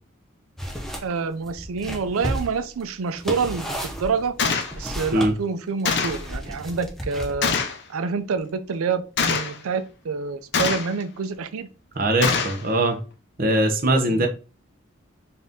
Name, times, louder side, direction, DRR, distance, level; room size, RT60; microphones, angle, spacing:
sound 1, 0.6-1.1 1.4-5.3 6.0-7.6, equal, ahead, 0.6 m, -32 dB
voice 1, 1.0-4.3 4.7-7.5 7.9-11.7 14.1-14.3, right 5 dB, 85° right, 0.5 m, -27 dB
Gunshot gunfire, 4.4-4.7 5.9-6.3 7.4-7.8 9.2-9.6 10.5-11.0 12.2-12.6, left 5 dB, 50° left, 0.5 m, -23 dB
voice 2, 11.9-13.0 13.4-14.3, right 1 dB, 40° right, 0.8 m, -21 dB
4.1 x 2.6 x 3.5 m
head